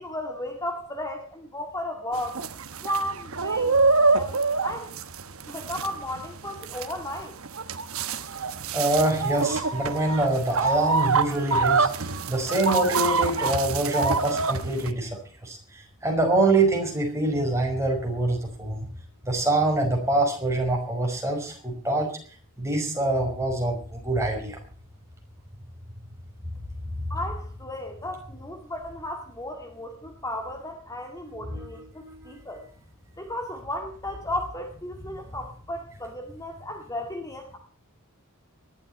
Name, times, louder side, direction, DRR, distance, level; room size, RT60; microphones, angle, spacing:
voice 1, 0.0-2.4 2.8-3.8 4.1-4.9 5.5-7.3 27.1-32.7 33.2-37.6, left 1 dB, 15° left, 3 dB, 2.0 m, -34 dB
sound 1, 2.1-14.9, right 4 dB, 65° right, 1.2 m, -26 dB
voice 2, 8.7-15.1 15.4-18.9 19.3-22.1 22.6-24.6 31.5-31.6 32.0-32.3, right 2 dB, 15° right, 1 dB, 5.6 m, -25 dB
19.5 x 12.5 x 4.4 m, 0.43 s
head